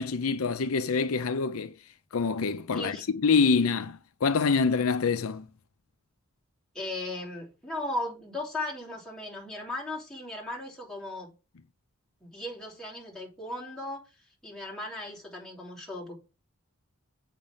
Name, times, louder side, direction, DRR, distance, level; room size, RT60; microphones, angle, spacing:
voice 1, 0.0-1.7 2.1-5.5, left 5 dB, 75° left, 0.6 m, -26 dB
voice 2, 2.7-3.0 6.7-11.3 12.2-14.0 14.4-16.2, left 1 dB, 5° left, 3.1 m, -37 dB
7.7 x 5.3 x 5.5 m
head